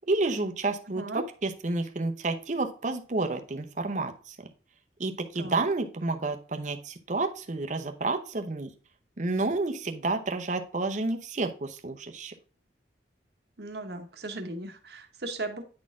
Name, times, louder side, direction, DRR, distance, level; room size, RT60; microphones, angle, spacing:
voice 1, 0.1-1.0 1.4-4.4 5.0-8.7 9.2-12.3, right 3 dB, 40° right, 6 dB, 0.8 m, -30 dB
voice 2, 0.9-1.2 5.3-5.6 13.6-15.6, right 2 dB, 60° right, 6 dB, 1.1 m, -37 dB
9.7 x 4.2 x 3.6 m, 0.39 s
head